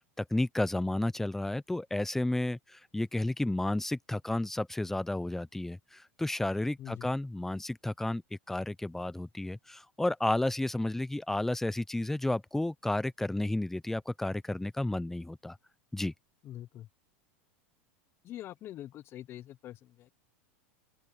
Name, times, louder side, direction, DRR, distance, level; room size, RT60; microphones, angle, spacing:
voice 1, 0.2-8.2 8.5-15.6 15.9-16.1, left 1 dB, 5° left, 0.7 m, -32 dB
voice 2, 6.8-7.1 16.4-16.9 18.2-20.1, left 12 dB, 40° left, 0.9 m, -44 dB
open air
supercardioid pair, 120°, 7 cm